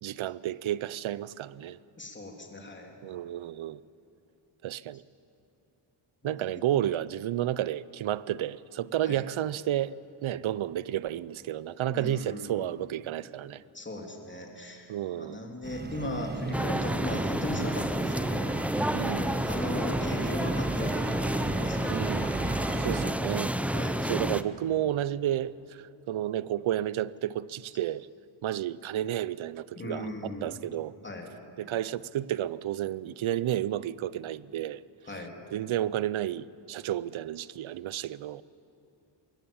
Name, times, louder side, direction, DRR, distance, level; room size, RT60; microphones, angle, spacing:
voice 1, 0.0-1.8 3.0-3.8 4.6-5.0 6.2-9.9 10.2-13.6 14.9-15.4 18.9-19.3 21.9-22.5 22.8-23.5 24.1-28.1 28.4-30.9 31.6-34.8 35.5-38.4, right 12 dB, 70° right, 0.6 m, -31 dB
voice 2, 2.0-3.0 6.4-6.5 9.0-9.2 11.9-12.8 13.7-18.6 19.1-21.9 23.7-24.0 29.7-30.6 31.0-31.3 35.1-35.3, left 1 dB, 20° left, 3.1 m, -38 dB
sound 1, 15.6-23.1, right 3 dB, 20° right, 1.1 m, -36 dB
sound 2, 16.5-24.4, right 1 dB, 5° right, 0.5 m, -30 dB
21.5 x 17.5 x 8.7 m
wide cardioid pair, 125°, 50 cm